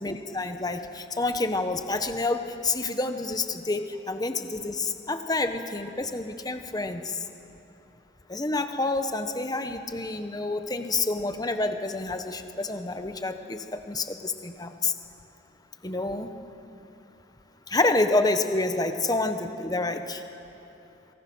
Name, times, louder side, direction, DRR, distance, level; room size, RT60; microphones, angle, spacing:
voice 1, 0.0-7.2 8.3-14.9 15.8-16.3 17.7-20.2, left 2 dB, 20° left, 7 dB, 1.3 m, -28 dB
26.5 x 24.0 x 6.3 m, 2.9 s
head